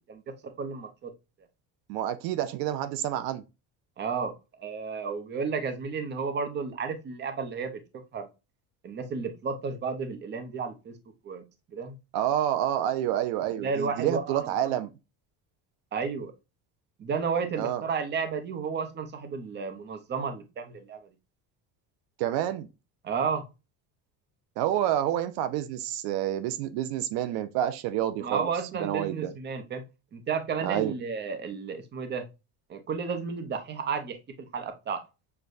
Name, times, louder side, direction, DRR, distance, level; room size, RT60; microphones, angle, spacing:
voice 1, 0.1-1.1 4.0-4.3 4.6-7.8 8.1-8.3 8.8-10.9 11.2-11.4 11.7-12.0 13.6-14.7 15.9-16.3 17.0-21.0 23.0-23.4 28.2-29.8 30.1-32.3 32.7-34.2 34.5-35.0, right 5 dB, 30° right, 0.7 m, -32 dB
voice 2, 1.9-3.4 12.1-14.9 17.6-17.8 22.2-22.7 24.6-28.5 28.8-29.3 30.6-30.9, right 11 dB, 85° right, 0.6 m, -28 dB
6.6 x 2.2 x 2.5 m
cardioid pair, 135°, 37 cm